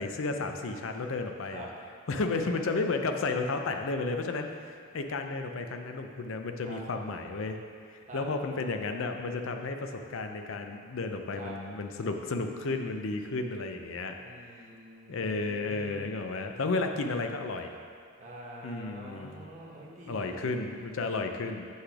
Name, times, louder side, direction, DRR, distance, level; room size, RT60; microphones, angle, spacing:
voice 1, 0.0-1.7 2.1-7.6 7.9-14.2 15.1-17.8 18.6-19.5 20.1-21.7, left 3 dB, 60° left, 5 dB, 0.5 m, -33 dB
voice 2, 2.1-2.6 6.6-6.8 8.1-8.2 11.4-11.5 14.2-16.1 16.8-16.9 18.2-20.5, right 1 dB, 35° right, -4 dB, 1.1 m, -46 dB
7.9 x 3.3 x 5.9 m, 2.2 s
head